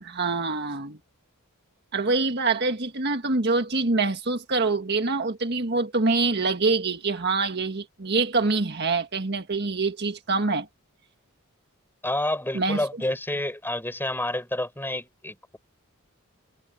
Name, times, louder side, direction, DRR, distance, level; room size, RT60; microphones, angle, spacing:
voice 1, 0.0-1.0 1.9-10.7 12.5-12.8, right 3 dB, 50° right, 1.6 m, -25 dB
voice 2, 12.0-15.6, left 1 dB, 10° left, 6.8 m, -29 dB
head